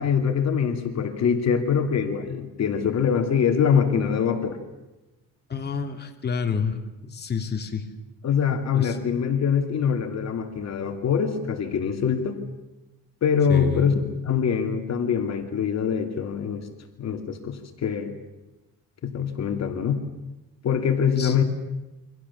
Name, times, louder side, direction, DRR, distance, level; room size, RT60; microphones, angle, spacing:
voice 1, 0.0-4.6 8.2-12.4 13.2-16.7 17.0-18.1 19.0-20.0 20.6-21.4, left 7 dB, 50° left, 6 dB, 2.7 m, -24 dB
voice 2, 5.5-6.8 7.0-7.9 8.5-9.0 13.5-14.0 21.2-21.3, left 5 dB, 30° left, 4 dB, 2.9 m, -29 dB
29.0 x 25.0 x 7.2 m, 1.0 s
cardioid pair, 130°, 35 cm